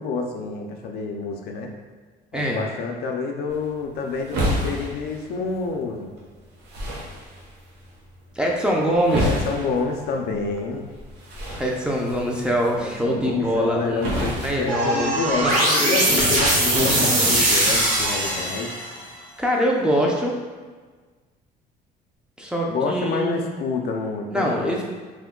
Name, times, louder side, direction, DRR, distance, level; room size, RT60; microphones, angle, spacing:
voice 1, 0.0-1.7 2.3-6.1 9.2-10.9 12.8-18.7 22.7-24.8, left 4 dB, 70° left, 2 dB, 0.4 m, -28 dB
voice 2, 2.3-2.7 8.4-9.3 11.5-15.1 15.4-15.5 15.8-16.3 16.7-17.4 19.4-20.3 22.4-23.4 24.3-24.8, equal, 5° right, -2 dB, 0.5 m, -24 dB
sound 1, 3.5-15.5, equal, 90° right, 0.8 m, -32 dB
sound 2, 14.7-19.0, right 1 dB, 50° right, 1.0 m, -21 dB
3.0 x 2.2 x 3.6 m, 1.4 s
cardioid pair, 110°, 17 cm